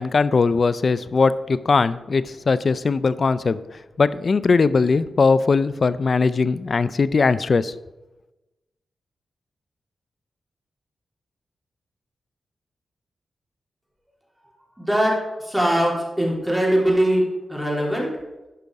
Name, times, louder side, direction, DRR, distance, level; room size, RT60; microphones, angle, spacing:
voice 1, 0.0-3.6 4.0-7.7, left 4 dB, 55° left, 16 dB, 0.4 m, -20 dB
voice 2, 14.8-18.1, right 1 dB, 5° right, -3 dB, 3.3 m, -21 dB
12.5 x 5.2 x 4.7 m, 1.0 s
cardioid pair, 70°, 0 cm